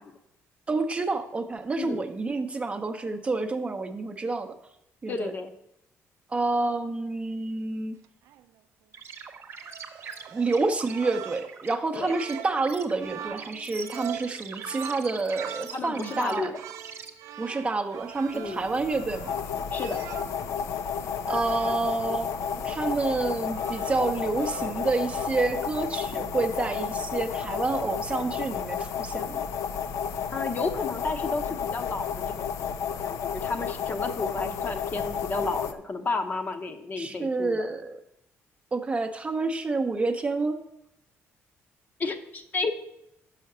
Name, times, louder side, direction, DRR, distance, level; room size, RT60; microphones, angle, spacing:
voice 1, 0.7-4.5 5.0-5.3 6.3-8.0 10.3-16.5 17.4-19.4 21.3-22.3 22.6-29.4 37.0-38.0 38.7-40.6, right 3 dB, 25° right, 7 dB, 0.6 m, -28 dB
voice 2, 1.8-2.1 5.1-5.5 11.9-12.2 15.7-16.6 18.3-18.6 19.7-20.0 30.3-32.5 32.9-37.7 42.0-42.7, left 3 dB, 35° left, 7 dB, 0.7 m, -32 dB
sound 1, 8.0-8.4 9.6-20.5 21.3-21.9 22.9-24.1 24.4-25.4, right 10 dB, 75° right, 0.4 m, -43 dB
sound 2, 8.9-17.1, right 6 dB, 50° right, 0.9 m, -43 dB
sound 3, 18.3-35.7, left 7 dB, 70° left, 0.5 m, -32 dB
6.3 x 5.7 x 6.6 m, 0.82 s
cardioid pair, 125°, 5 cm